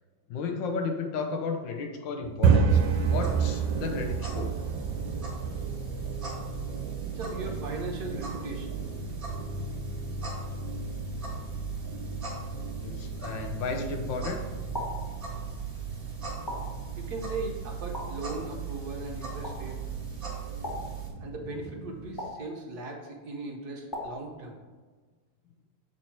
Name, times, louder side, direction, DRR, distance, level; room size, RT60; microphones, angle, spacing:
voice 1, 0.3-4.5 12.8-14.4, left 4 dB, 75° left, 4 dB, 1.5 m, -33 dB
sound 1, 2.2-22.1, right 5 dB, 90° right, 1.5 m, -32 dB
sound 2, 2.7-21.1, right 8 dB, 30° right, 1.8 m, -38 dB
voice 2, 7.1-8.8 17.0-19.8 21.2-24.6, right 2 dB, 60° right, 1 dB, 1.3 m, -38 dB
sound 3, 14.7-15.1 16.5-16.9 17.9-18.3 19.4-19.7 20.6-21.0 22.2-22.5 23.9-24.3, left 1 dB, 15° left, 0.9 m, -37 dB
7.5 x 4.3 x 4.5 m, 1.4 s
omnidirectional pair, 2.1 m